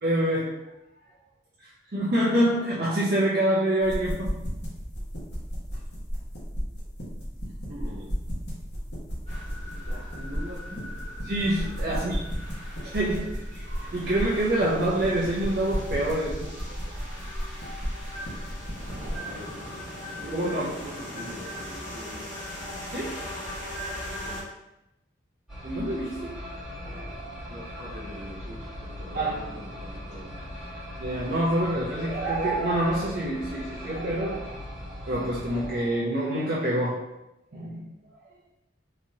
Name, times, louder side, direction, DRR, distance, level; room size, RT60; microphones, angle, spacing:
voice 1, 0.0-0.7 1.6-4.4 11.3-12.2 12.8-17.2 19.0-19.4 20.3-20.7 22.9-23.3 25.6-26.4 26.7-27.4 29.1-29.5 31.0-37.1 37.5-37.9 38.2-38.3, right 1 dB, 50° right, -6 dB, 0.5 m, -27 dB
sound 1, 3.8-19.2, equal, 60° left, 1.0 m, -34 dB
voice 2, 7.7-8.1 9.8-10.8 11.9-12.2 19.2-19.5 20.2-22.2 24.2-24.4 27.5-30.3, equal, 85° right, -9 dB, 1.0 m, -42 dB
sound 2, 9.3-24.4, left 1 dB, 35° left, 1.2 m, -40 dB
sound 3, 25.5-35.7, equal, 5° right, 1.5 m, -39 dB
3.9 x 2.9 x 2.7 m, 0.90 s
head